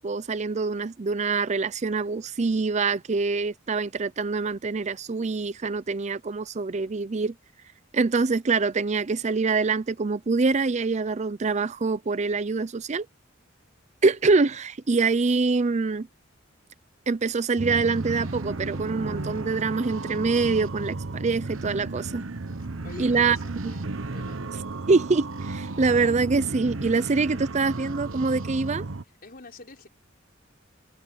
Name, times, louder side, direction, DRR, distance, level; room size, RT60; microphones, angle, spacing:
voice 1, 0.0-7.3 7.9-13.1 14.0-16.1 17.1-22.2 23.0-23.4 24.9-28.8, right 4 dB, 35° right, 0.5 m, -25 dB
sound 1, 17.6-29.0, right 3 dB, 90° right, 1.1 m, -34 dB
voice 2, 22.6-24.4 29.2-29.9, left 2 dB, 50° left, 5.2 m, -46 dB
head